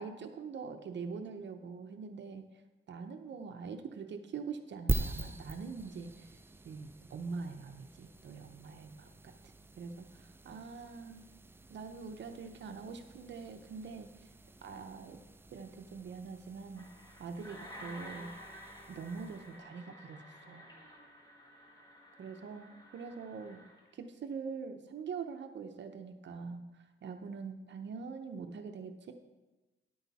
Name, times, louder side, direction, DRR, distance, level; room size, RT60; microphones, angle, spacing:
voice 1, 0.0-2.4 2.9-6.4 6.6-11.2 11.7-14.3 14.6-15.2 15.5-16.8 17.2-18.3 18.9-20.7 22.2-23.6 23.9-29.1, right 5 dB, 60° right, 6 dB, 0.7 m, -44 dB
sound 1, 4.9-19.6, right 2 dB, 10° right, 0.3 m, -44 dB
sound 2, 16.8-23.9, equal, 20° left, 1.6 m, -52 dB
10.0 x 8.7 x 4.1 m, 1.1 s
wide cardioid pair, 150°, 21 cm